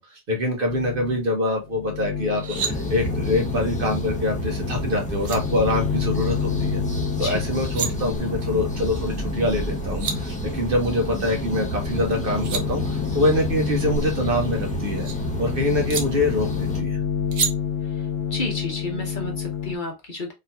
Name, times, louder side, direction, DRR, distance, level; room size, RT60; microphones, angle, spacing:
voice 1, 0.0-6.8 7.2-15.1 15.4-17.0, left 1 dB, 55° right, 1.2 m, -25 dB
sound 1, 0.7-1.3 1.6-19.8, left 8 dB, 90° left, 0.9 m, -30 dB
sound 2, 2.2-2.7 4.8-4.9 5.2-5.4 7.5-7.9 9.6-9.7 9.8-10.2 12.1-12.6 14.1-15.1 15.9-16.0 17.3-17.5, right 6 dB, 85° right, 1.0 m, -29 dB
sound 3, 2.5-16.8, right 1 dB, 10° left, 0.7 m, -30 dB
voice 2, 18.3-20.3, left 2 dB, 50° left, 1.1 m, -31 dB
3.7 x 2.8 x 2.2 m
omnidirectional pair, 1.1 m